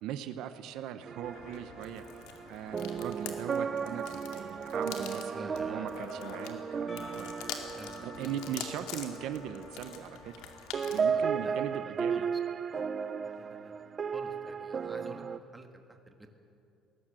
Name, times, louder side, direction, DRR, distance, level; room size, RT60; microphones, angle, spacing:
voice 1, 0.0-7.5 8.0-10.3 10.9-12.3, right 10 dB, 60° right, 10 dB, 0.8 m, -40 dB
sound 1, 1.1-10.5 10.7-15.4, right 6 dB, 25° right, 0.4 m, -35 dB
sound 2, 1.2-11.1, left 7 dB, 85° left, 2.4 m, -45 dB
voice 2, 5.3-6.1 7.7-8.5 11.1-12.3 13.2-13.8 14.1-16.3, right 2 dB, 10° right, 4 dB, 1.5 m, -50 dB
Percussion / Church bell, 6.9-11.9, left 2 dB, 20° left, 3.9 m, -52 dB
21.0 x 18.5 x 7.5 m, 2.7 s
cardioid pair, 175°, 0 cm